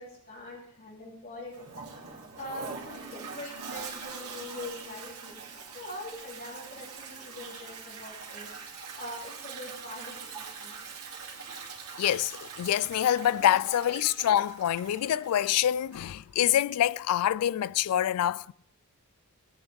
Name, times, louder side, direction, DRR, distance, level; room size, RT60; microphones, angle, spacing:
voice 1, 0.0-1.7 2.4-5.4 5.7-8.5 8.9-10.8, left 1 dB, 40° left, 3.3 m, -43 dB
Toilet flush, 1.5-16.1, right 5 dB, 90° right, 2.4 m, -43 dB
voice 2, 12.0-18.5, left 11 dB, 80° left, 0.3 m, -26 dB
17.5 x 9.0 x 3.6 m
head